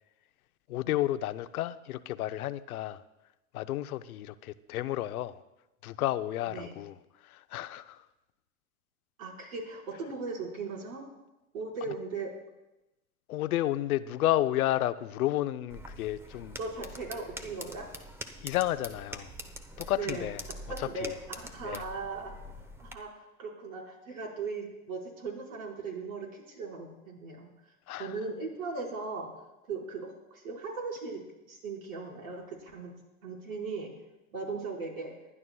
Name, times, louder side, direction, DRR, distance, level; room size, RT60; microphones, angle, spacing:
voice 1, 0.7-3.0 3.5-5.4 5.8-8.1 11.9-12.0 13.3-16.6 18.4-19.3 19.8-20.4 20.8-21.1 21.6-21.8 27.9-28.1, left 14 dB, 75° left, 13 dB, 0.7 m, -31 dB
voice 2, 9.2-11.0 11.5-12.3 16.6-17.9 20.0-20.3 20.8-22.3 22.8-27.5 28.0-29.3 29.7-31.2 31.5-32.9 33.2-33.9 34.3-35.1, right 4 dB, 70° right, -2 dB, 4.7 m, -38 dB
sound 1, 15.7-22.9, equal, 5° right, 0.9 m, -44 dB
25.5 x 11.0 x 2.3 m, 0.96 s
hypercardioid pair, 95°, 43 cm